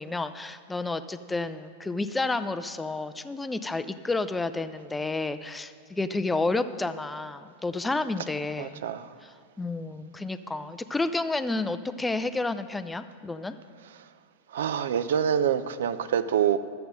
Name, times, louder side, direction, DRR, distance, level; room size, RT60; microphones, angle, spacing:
voice 1, 0.0-8.8 9.2-13.6, left 3 dB, 10° left, 11 dB, 0.4 m, -30 dB
voice 2, 8.6-9.1 14.5-16.6, right 8 dB, 60° right, 14 dB, 0.4 m, -26 dB
12.0 x 7.9 x 5.2 m, 2.2 s
figure-of-eight pair, 90°, 0 cm